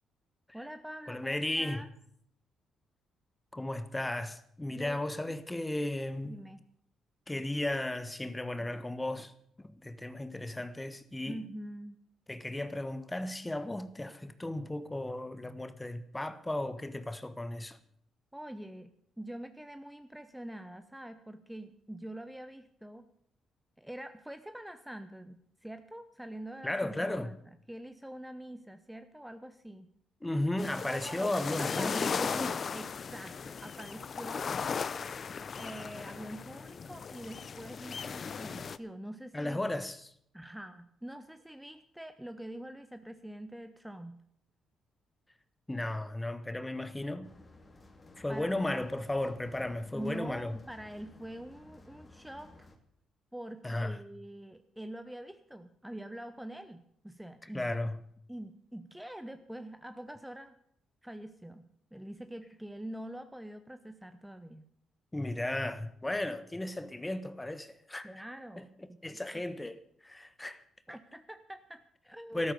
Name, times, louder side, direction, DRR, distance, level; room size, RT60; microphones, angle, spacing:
voice 1, 0.5-1.9 4.7-5.4 6.3-6.6 11.3-12.0 18.3-23.1 23.8-27.4 27.7-29.9 30.9-34.6 35.5-39.6 40.3-44.2 48.3-48.6 49.9-52.7 53.3-57.7 58.3-60.6 61.0-64.7 68.0-69.5 70.9-72.5, right 1 dB, 5° right, 0.9 m, -45 dB
voice 2, 1.1-1.8 3.5-6.4 7.3-9.3 9.6-11.4 12.3-17.8 26.6-27.3 30.2-32.6 39.3-40.1 45.7-47.3 48.2-50.6 53.6-54.0 57.5-58.0 65.1-68.1 68.6-70.6 72.3-72.5, left 1 dB, 15° left, 1.2 m, -35 dB
sound 1, 30.6-38.8, left 6 dB, 45° left, 0.7 m, -37 dB
sound 2, 47.2-52.8, left 2 dB, 30° left, 2.4 m, -56 dB
13.0 x 13.0 x 6.8 m
cardioid pair, 90°, 0 cm